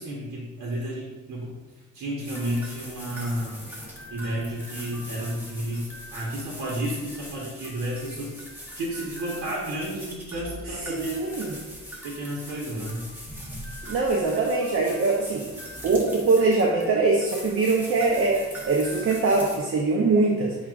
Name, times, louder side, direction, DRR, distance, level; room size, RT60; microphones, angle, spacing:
voice 1, 0.0-1.5 1.9-3.6 4.1-8.4 8.8-11.1 12.0-13.0, right 1 dB, 70° right, -4 dB, 1.0 m, -31 dB
sound 1, 2.2-19.6, equal, 5° right, 1.1 m, -41 dB
voice 2, 10.7-11.5 13.9-15.5 15.8-20.5, right 3 dB, 45° right, -1 dB, 0.6 m, -23 dB
7.1 x 2.4 x 2.4 m, 1.2 s
cardioid pair, 90°, 30 cm